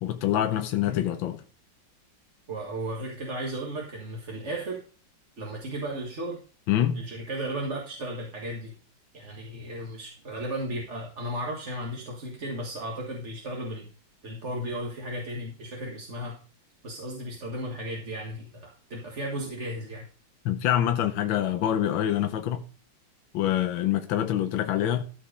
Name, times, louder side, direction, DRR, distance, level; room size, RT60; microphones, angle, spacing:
voice 1, 0.0-1.4 6.7-7.0 20.4-22.6 23.3-25.0, left 11 dB, 85° left, 1.6 m, -25 dB
voice 2, 2.5-4.8 5.4-6.4 6.9-8.7 9.1-13.9 14.2-16.4 16.8-20.1, right 1 dB, 40° right, 1.9 m, -35 dB
13.5 x 5.3 x 4.9 m
omnidirectional pair, 2.1 m